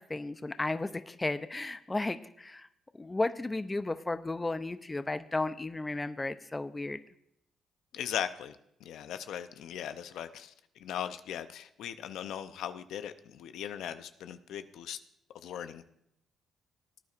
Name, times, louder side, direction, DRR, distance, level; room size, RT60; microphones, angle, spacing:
voice 1, 0.0-2.7 2.9-7.0, left 2 dB, 20° left, 0.5 m, -34 dB
voice 2, 7.9-8.6 8.8-10.5 10.8-15.0 15.4-15.8, left 9 dB, 80° left, 0.6 m, -38 dB
18.5 x 9.5 x 2.5 m
cardioid pair, 90°, 0 cm